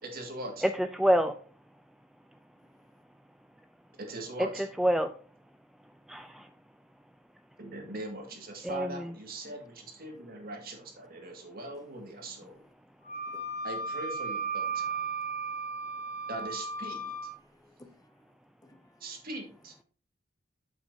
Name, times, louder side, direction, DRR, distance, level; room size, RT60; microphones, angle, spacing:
voice 1, 0.0-0.7 4.0-4.7 7.6-12.6 13.6-15.0 16.3-17.2 19.0-19.7, right 1 dB, 50° right, 2.0 m, -41 dB
voice 2, 0.6-1.3 4.4-5.1 6.1-6.5 8.6-9.1, equal, ahead, 0.3 m, -27 dB
Wind instrument woodwind instrument, 13.0-17.3, right 4 dB, 40° left, 1.6 m, -35 dB
voice 3, 17.4-18.3 18.6-19.1, left 2 dB, 20° left, 0.7 m, -58 dB
8.3 x 7.5 x 2.7 m
head